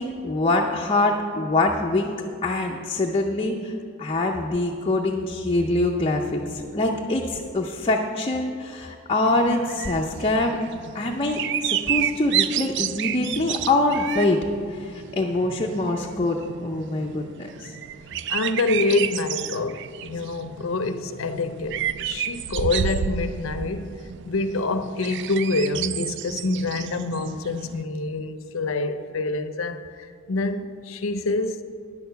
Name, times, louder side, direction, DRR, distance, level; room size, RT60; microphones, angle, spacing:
voice 1, 0.0-2.2 2.4-10.6 10.9-14.4 14.7-17.8, left 2 dB, 30° left, 0.5 m, -24 dB
sound 1, 9.3-27.8, right 9 dB, 60° right, 0.3 m, -31 dB
voice 2, 18.3-31.6, left 3 dB, 70° left, 0.6 m, -26 dB
9.9 x 6.6 x 6.8 m
head